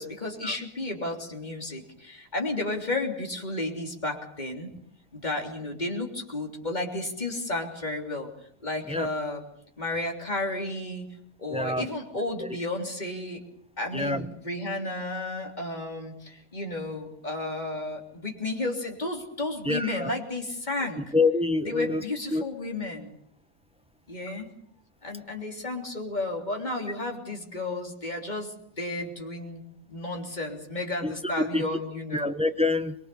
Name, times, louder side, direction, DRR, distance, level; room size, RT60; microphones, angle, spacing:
voice 1, 0.0-4.7 5.1-8.3 8.6-9.4 9.8-11.1 11.4-13.4 13.8-21.1 21.7-23.1 24.1-24.5 25.0-29.6 29.9-32.3, left 2 dB, 30° left, 2 dB, 3.5 m, -32 dB
voice 2, 11.5-11.9 12.4-12.6 13.9-14.3 19.6-20.1 21.1-22.0 22.3-22.4 31.0-31.7 32.1-32.9, left 3 dB, 5° right, 9 dB, 0.7 m, -26 dB
24.0 x 22.0 x 7.0 m, 0.65 s
omnidirectional pair, 1.5 m